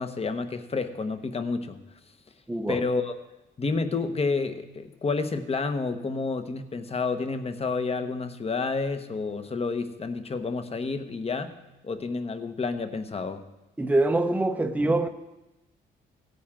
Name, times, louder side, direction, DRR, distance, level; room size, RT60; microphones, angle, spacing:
voice 1, 0.0-1.8 2.7-3.1 3.6-11.6 11.8-13.4, left 4 dB, 30° left, 1.0 m, -29 dB
voice 2, 13.8-15.1, right 2 dB, 5° right, 0.7 m, -24 dB
16.5 x 9.5 x 3.7 m
cardioid pair, 90°, 20 cm